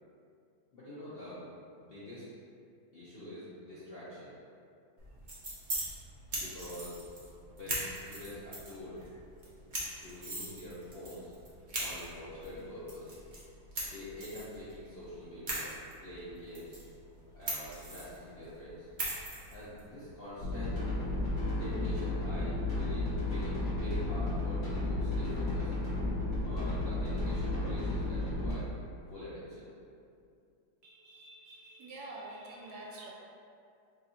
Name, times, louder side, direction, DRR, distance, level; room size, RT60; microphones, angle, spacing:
voice 1, 0.7-1.4 1.7-2.2 2.9-4.3 6.3-7.0 7.5-9.0 10.0-11.3 11.8-13.2 13.7-15.7 16.0-16.8 17.3-18.9 19.5-20.8 21.2-21.3 21.6-25.7 26.4-28.6 29.1-29.7, left 1 dB, 65° left, -11 dB, 0.5 m, -45 dB
sound 1, 5.0-21.9, right 1 dB, 45° right, 0.6 m, -42 dB
sound 2, 20.4-28.5, left 2 dB, 40° left, 1.4 m, -33 dB
voice 2, 30.8-33.1, right 2 dB, 65° right, -3 dB, 1.1 m, -47 dB
3.9 x 2.6 x 4.2 m, 2.4 s
omnidirectional pair, 2.1 m